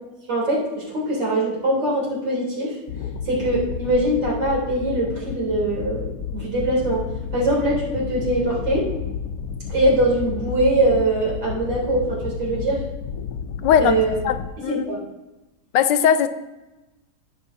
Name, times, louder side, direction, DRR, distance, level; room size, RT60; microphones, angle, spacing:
voice 1, 0.3-2.8 3.3-6.1 6.3-7.0 7.3-8.9 9.7-12.8 13.8-14.2 14.7-15.0, right 1 dB, 80° right, -5 dB, 4.0 m, -22 dB
sound 1, 2.9-14.5, left 7 dB, 70° left, 1.0 m, -31 dB
voice 2, 13.6-14.0 14.2-14.8 15.7-16.3, left 8 dB, 90° left, 11 dB, 1.3 m, -18 dB
17.5 x 6.3 x 2.7 m, 1.0 s
omnidirectional pair, 1.9 m